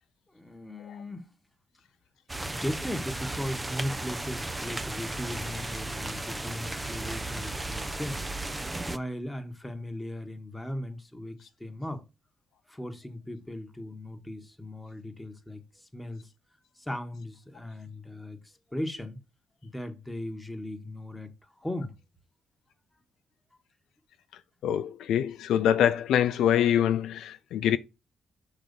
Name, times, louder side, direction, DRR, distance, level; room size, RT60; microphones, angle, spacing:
voice 1, 0.3-1.3 2.5-8.2 8.8-12.0 12.7-16.3 16.8-18.4 18.7-19.2 19.6-21.9, left 1 dB, 5° left, 1.3 m, -37 dB
sound 1, 2.3-9.0, right 2 dB, 15° right, 0.6 m, -35 dB
voice 2, 24.6-27.8, left 10 dB, 80° left, 0.4 m, -24 dB
5.9 x 4.0 x 5.1 m
cardioid pair, 90°, 0 cm